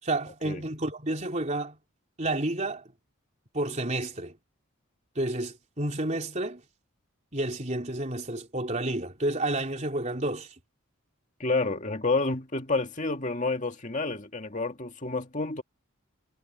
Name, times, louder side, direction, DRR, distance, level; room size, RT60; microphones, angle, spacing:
voice 1, 0.0-1.8 2.2-2.9 3.5-4.4 5.2-6.6 7.3-10.5, right 1 dB, 35° right, 3.9 m, -30 dB
voice 2, 11.4-15.6, left 3 dB, 35° left, 2.2 m, -29 dB
head